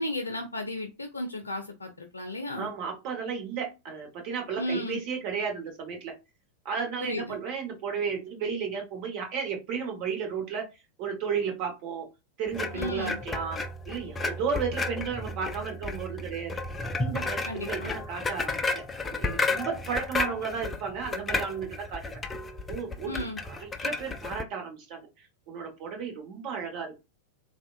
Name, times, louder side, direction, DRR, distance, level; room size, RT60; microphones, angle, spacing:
voice 1, 0.0-2.7 4.6-5.0 7.0-7.4 12.7-13.2 17.5-17.9 23.1-23.4, left 1 dB, 80° left, 5 dB, 0.5 m, -34 dB
voice 2, 2.6-6.1 6.6-10.6 11.0-12.1 12.4-13.6 13.9-16.5 17.0-22.0 22.7-25.1 25.5-27.0, right 6 dB, 45° right, 2 dB, 1.2 m, -33 dB
sound 1, 12.5-24.4, left 3 dB, 15° left, 0.4 m, -33 dB
3.4 x 2.4 x 2.4 m, 0.25 s
figure-of-eight pair, 90°, 0 cm